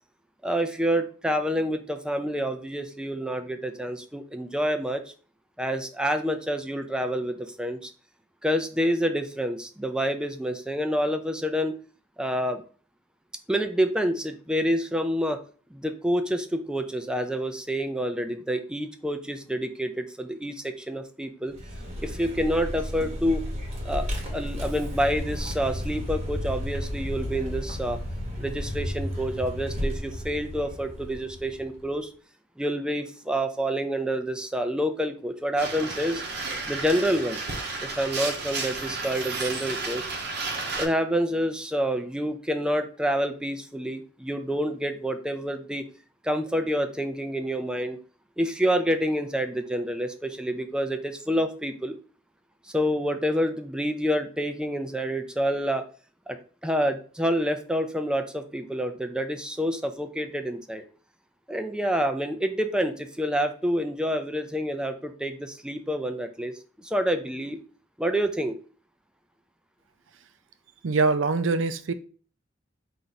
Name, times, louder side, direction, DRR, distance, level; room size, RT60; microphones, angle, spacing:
voice 1, 0.4-5.0 5.6-7.9 8.4-11.8 12.2-12.6 13.5-15.4 15.7-21.5 22.0-23.4 23.8-24.1 24.3-28.0 28.4-32.1 32.6-36.2 36.7-37.4 37.8-40.0 40.8-45.9 46.2-48.0 48.4-52.0 52.7-55.8 56.3-56.4 56.6-60.8 61.5-66.5 66.8-67.6 68.0-68.6, equal, 5° right, 0.4 m, -28 dB
Vehicle, 21.5-31.8, left 1 dB, 35° right, 1.0 m, -33 dB
sound 1, 35.6-40.9, right 3 dB, 60° right, 0.8 m, -32 dB
voice 2, 70.8-71.9, right 4 dB, 85° right, 0.4 m, -23 dB
4.5 x 2.6 x 3.9 m
head